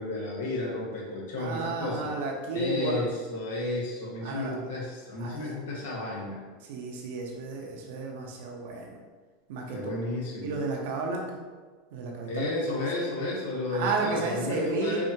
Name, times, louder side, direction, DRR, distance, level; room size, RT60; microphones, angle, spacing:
voice 1, 0.0-2.1 2.5-6.4 9.7-10.6 12.3-15.0, left 2 dB, 85° left, -3 dB, 1.3 m, -32 dB
voice 2, 1.4-3.1 4.2-4.6 5.2-5.6 6.6-9.0 9.5-9.8 10.4-11.4 11.9-13.1 13.7-15.0, right 3 dB, 75° right, 0 dB, 0.8 m, -32 dB
4.8 x 2.8 x 2.8 m, 1.4 s
supercardioid pair, 135°, 0 cm